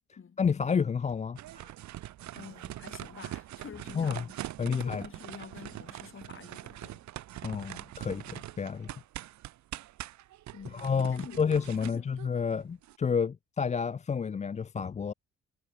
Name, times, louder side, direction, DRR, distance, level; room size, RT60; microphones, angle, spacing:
voice 1, 0.4-1.7 3.9-4.2 4.6-5.1 7.4-8.9 10.7-15.1, left 6 dB, 25° left, 0.4 m, -30 dB
sound 1, 1.4-13.0, right 14 dB, 65° right, 0.8 m, -43 dB
voice 2, 2.3-7.1 10.5-11.5 11.8-12.1, left 6 dB, 45° left, 3.7 m, -48 dB
cardioid pair, 90°, 30 cm